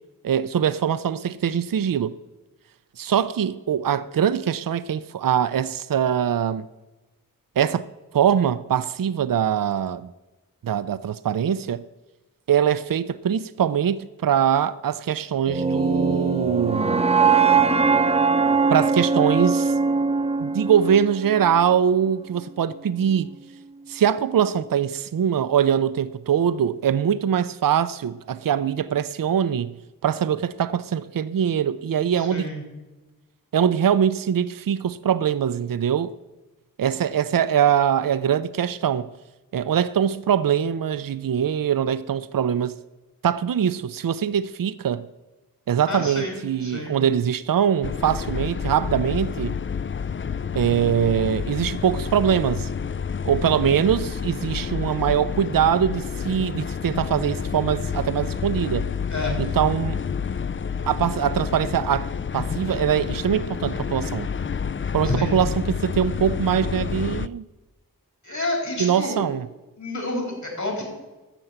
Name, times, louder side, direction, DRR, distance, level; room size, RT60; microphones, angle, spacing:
voice 1, 0.2-2.1 3.0-6.7 7.6-7.9 8.1-10.1 10.6-11.8 12.5-17.0 18.7-19.7 20.4-23.3 23.9-29.7 30.0-32.5 33.5-36.1 36.8-39.1 39.5-42.8 43.2-45.0 45.7-49.6 50.5-52.7 53.2-58.9 59.4-60.0 60.9-64.3 64.9-67.4 68.8-69.5, right 8 dB, 70° right, 0.5 m, -22 dB
sound 1, 15.5-21.6, right 4 dB, 15° right, 0.6 m, -21 dB
voice 2, 32.2-32.6 45.9-47.0 59.1-59.6 65.0-65.4 68.2-69.2 69.8-70.8, left 1 dB, 55° left, 4.3 m, -29 dB
sound 2, 47.8-67.3, left 6 dB, 35° left, 0.4 m, -29 dB
13.0 x 6.8 x 7.8 m
wide cardioid pair, 70°, 35 cm